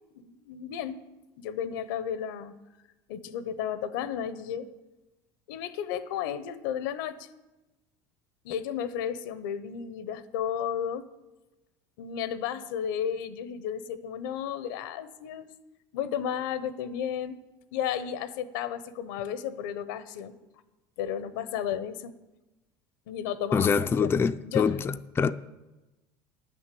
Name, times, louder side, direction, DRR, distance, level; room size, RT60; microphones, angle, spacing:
voice 1, 0.2-1.0 1.4-2.5 3.1-4.7 5.5-7.3 8.4-11.1 12.0-15.5 15.9-17.4 17.7-20.3 21.0-22.1 23.1-23.7 24.0-24.1 24.4-24.8, left 9 dB, 90° left, 0.8 m, -33 dB
voice 2, 23.5-25.3, left 6 dB, 20° left, 0.4 m, -25 dB
10.5 x 6.4 x 8.4 m
supercardioid pair, 105°, 10 cm